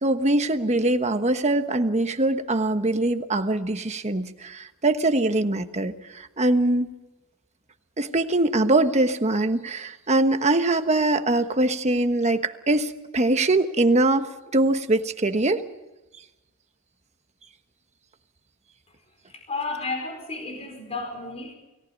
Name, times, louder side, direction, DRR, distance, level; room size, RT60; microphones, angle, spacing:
voice 1, 0.0-6.9 8.0-14.3 14.5-15.6, right 2 dB, 30° right, 8 dB, 1.2 m, -22 dB
voice 2, 19.3-21.5, left 3 dB, 30° left, 4 dB, 4.8 m, -32 dB
30.0 x 18.0 x 5.4 m, 1.0 s
head